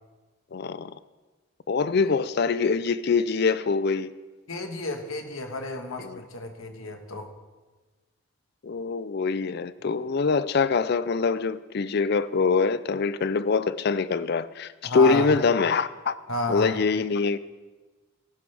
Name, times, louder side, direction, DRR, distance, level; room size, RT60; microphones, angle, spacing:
voice 1, 0.5-0.9 1.7-4.1 6.0-6.2 8.6-16.1 16.5-17.4, left 4 dB, 50° left, 0.4 m, -24 dB
voice 2, 4.5-7.3 14.8-15.3 16.3-16.8, left 2 dB, 90° left, 1.5 m, -31 dB
18.0 x 11.5 x 3.5 m
head